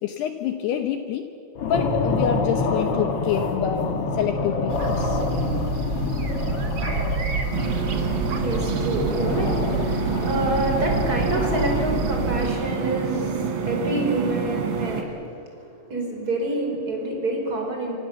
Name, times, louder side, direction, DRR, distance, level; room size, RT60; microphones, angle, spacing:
voice 1, 0.0-1.3 1.6-5.2, left 9 dB, 75° left, 6 dB, 2.6 m, -27 dB
sound 1, 1.5-11.9, left 3 dB, 60° left, 1.5 m, -27 dB
sound 2, 4.7-12.5, right 3 dB, 45° right, 1.5 m, -29 dB
sound 3, 7.5-15.0, right 6 dB, 90° right, 5.0 m, -28 dB
voice 2, 7.6-15.3 15.9-18.0, right 1 dB, 20° right, 1 dB, 4.8 m, -27 dB
26.0 x 25.5 x 7.2 m, 2.6 s
omnidirectional pair, 5.7 m